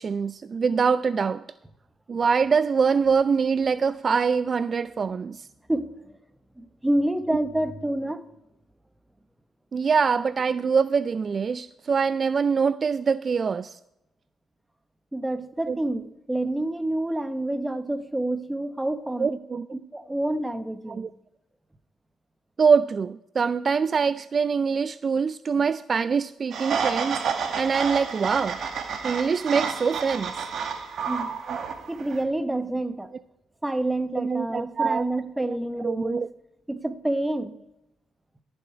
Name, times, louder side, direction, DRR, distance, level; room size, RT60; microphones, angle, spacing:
voice 1, 0.0-1.4 2.1-5.5 9.7-13.8 15.7-15.8 19.2-19.7 20.9-21.1 22.6-27.2 27.6-28.6 29.0-30.3 31.5-31.6 34.2-35.1 35.4-35.5 35.8-36.3, right 5 dB, 40° right, 15 dB, 0.3 m, -24 dB
voice 2, 6.6-8.2 15.1-19.4 19.7-21.1 31.1-31.3 31.9-33.1 33.6-36.2 36.7-37.5, right 1 dB, 10° right, 11 dB, 0.9 m, -28 dB
sound 1, 26.5-32.2, right 6 dB, 65° right, 1.6 m, -30 dB
14.5 x 7.0 x 4.7 m, 0.84 s
cardioid pair, 90°, 0 cm